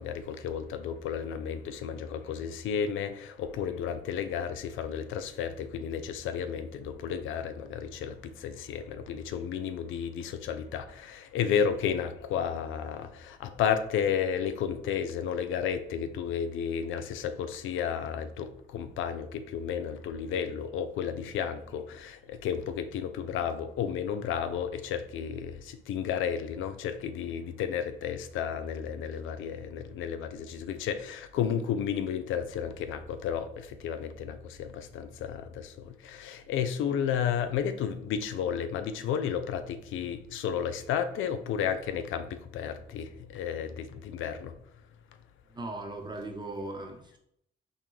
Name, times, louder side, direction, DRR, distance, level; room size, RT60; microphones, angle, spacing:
voice 1, 0.0-44.5, left 8 dB, 80° left, 10 dB, 0.5 m, -32 dB
voice 2, 45.5-47.2, right 2 dB, 20° right, 2 dB, 0.8 m, -38 dB
5.4 x 2.3 x 3.0 m, 0.74 s
cardioid pair, 90°, 20 cm